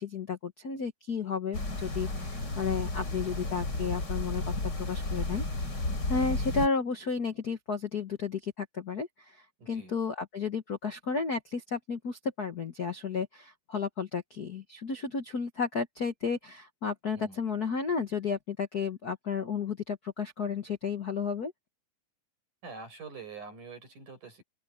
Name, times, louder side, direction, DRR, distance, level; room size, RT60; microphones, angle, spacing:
voice 1, 0.0-5.4 6.1-21.5, left 5 dB, 50° left, 1.1 m, -33 dB
sound 1, 1.5-6.7, left 2 dB, 30° left, 5.7 m, -33 dB
voice 2, 9.6-9.9 17.1-17.4 22.6-24.4, right 4 dB, 75° right, 9.3 m, -45 dB
open air
omnidirectional pair, 3.7 m